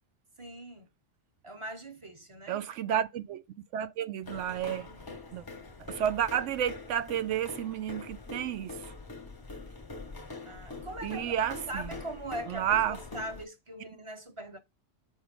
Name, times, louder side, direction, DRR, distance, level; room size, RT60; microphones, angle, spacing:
voice 1, 0.4-0.9 1.4-2.6 10.4-14.6, right 1 dB, 30° right, 0.9 m, -41 dB
voice 2, 2.5-3.4 3.7-4.9 5.3-5.4 5.8-8.8 11.0-11.9 12.5-13.0, right 10 dB, 85° right, 0.9 m, -31 dB
sound 1, 4.2-13.4, left 3 dB, 20° left, 0.7 m, -44 dB
6.4 x 4.9 x 5.1 m
omnidirectional pair, 1.2 m